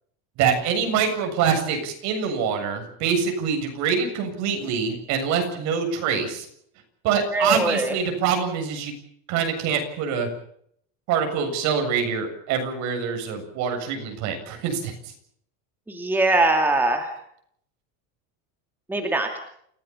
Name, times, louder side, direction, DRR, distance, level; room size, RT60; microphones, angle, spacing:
voice 1, 0.4-6.5 7.0-8.9 9.3-10.3 11.1-14.9, right 6 dB, 50° right, 4 dB, 7.6 m, -25 dB
voice 2, 7.3-7.9 15.9-17.1 18.9-19.4, right 2 dB, 5° right, 4 dB, 2.4 m, -22 dB
29.0 x 17.0 x 7.3 m, 0.68 s
cardioid pair, 170°, 35 cm